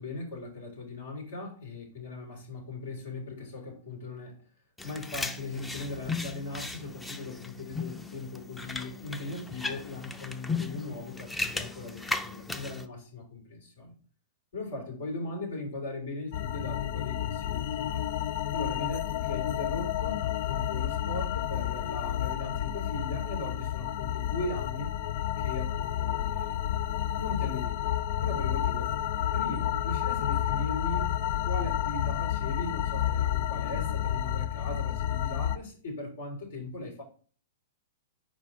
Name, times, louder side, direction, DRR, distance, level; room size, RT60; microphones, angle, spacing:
voice 1, 0.0-4.3 4.8-13.9 14.5-18.1 18.5-24.9 25.4-26.6 27.2-27.9 28.2-28.9 29.3-31.1 31.4-37.0, left 2 dB, 70° left, 3.3 m, -39 dB
sound 1, 4.8-12.8, left 3 dB, 10° left, 0.6 m, -36 dB
sound 2, 16.3-35.6, left 11 dB, 55° left, 0.4 m, -30 dB
5.0 x 4.4 x 4.6 m
hypercardioid pair, 115°, 0 cm